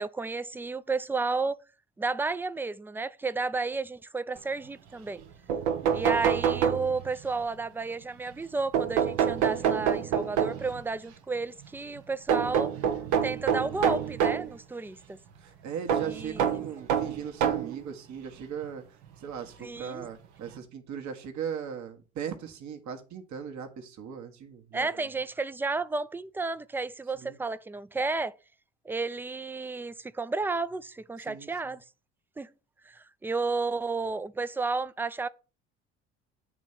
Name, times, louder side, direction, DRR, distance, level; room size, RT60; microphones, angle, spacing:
voice 1, 0.0-1.6 2.0-5.2 5.9-12.7 13.2-15.2 16.0-16.5 19.6-20.1 24.7-28.3 28.9-31.8 32.4-32.5 32.9-35.3, right 3 dB, 5° right, 0.3 m, -32 dB
sound 1, 5.2-5.3 5.5-7.2 8.7-10.8 12.3-14.5 15.9-17.8 18.6-18.7 20.0-20.1 20.5-20.6, right 8 dB, 75° right, 0.9 m, -27 dB
voice 2, 15.4-25.0 27.1-27.4 31.2-31.8, right 7 dB, 55° right, 1.3 m, -39 dB
8.2 x 3.2 x 5.6 m
hypercardioid pair, 60°, 35 cm